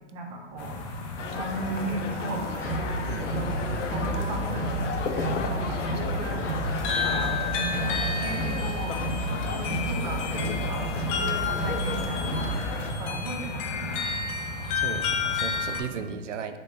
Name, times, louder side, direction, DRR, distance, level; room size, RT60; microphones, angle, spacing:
voice 1, 0.1-0.8 1.3-2.7 3.3-3.5 3.8-6.4 7.0-9.0 9.3-14.0, right 2 dB, 30° right, 1 dB, 0.8 m, -36 dB
sound 1, 0.6-15.8, left 4 dB, 30° left, 0.4 m, -32 dB
sound 2, 1.2-12.9, left 5 dB, 85° left, 0.6 m, -35 dB
sound 3, 2.6-12.6, right 2 dB, 10° left, 1.1 m, -32 dB
voice 2, 3.1-3.5 14.7-16.6, right 7 dB, 85° right, 9 dB, 0.5 m, -36 dB
3.3 x 3.2 x 4.0 m, 1.4 s
hypercardioid pair, 120°, 36 cm